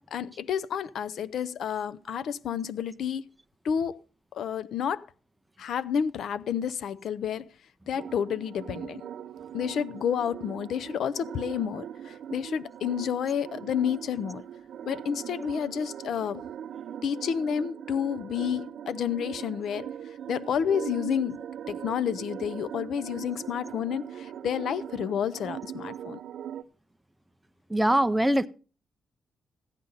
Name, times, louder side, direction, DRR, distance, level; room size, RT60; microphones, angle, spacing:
voice 1, 0.1-3.2 3.6-3.9 4.3-5.0 5.6-7.4 7.9-9.0 9.5-14.4 14.8-16.4 17.0-19.8 20.3-21.4 21.7-26.2, left 8 dB, 65° left, 0.5 m, -30 dB
sound 1, 8.0-26.6, right 9 dB, 65° right, 0.5 m, -40 dB
voice 2, 27.7-28.5, right 1 dB, 5° right, 0.5 m, -22 dB
14.0 x 9.6 x 3.9 m
cardioid pair, 135°, 0 cm